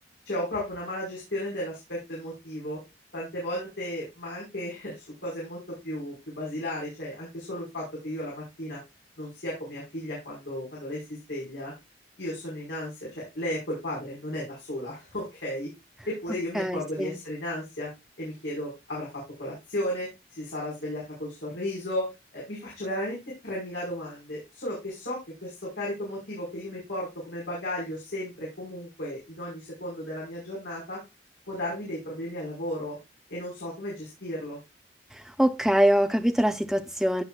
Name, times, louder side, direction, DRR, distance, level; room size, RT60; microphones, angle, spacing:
voice 1, 0.2-2.8 3.1-8.8 9.2-11.7 12.2-15.7 16.1-17.9 18.2-31.0 31.5-33.0 33.3-34.6, left 1 dB, 80° left, 5.1 m, -34 dB
voice 2, 16.5-17.2 35.1-37.2, equal, ahead, 0.7 m, -24 dB
16.0 x 6.3 x 2.4 m
head